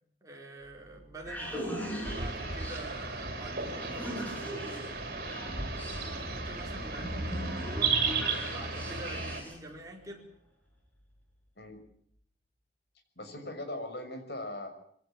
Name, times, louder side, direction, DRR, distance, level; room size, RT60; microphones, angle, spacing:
voice 1, 0.2-1.9 2.2-5.2 6.1-8.1 8.5-10.3, right 1 dB, 20° right, 0 dB, 4.7 m, -46 dB
sound 1, 0.6-9.7, equal, 10° left, 7.5 m, -40 dB
sound 2, 2.0-9.4, right 4 dB, 55° right, 5.9 m, -34 dB
voice 2, 13.2-14.7, left 1 dB, 65° left, 5 dB, 6.2 m, -39 dB
23.0 x 17.5 x 9.0 m, 0.66 s
head